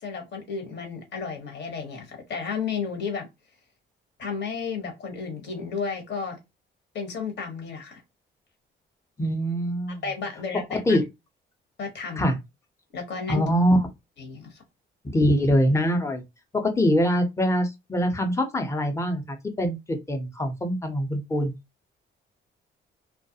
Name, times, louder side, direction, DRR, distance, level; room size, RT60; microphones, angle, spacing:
voice 1, 0.0-3.3 4.2-6.4 6.9-8.0 10.0-11.0 11.8-12.4 12.9-13.4 14.2-14.6, left 5 dB, 60° left, 1.1 m, -33 dB
voice 2, 9.2-10.0 10.7-11.0 12.2-12.3 13.3-13.9 15.1-16.2 16.5-21.5, equal, 15° left, 0.6 m, -23 dB
2.3 x 2.1 x 2.7 m
cardioid pair, 90°, 20 cm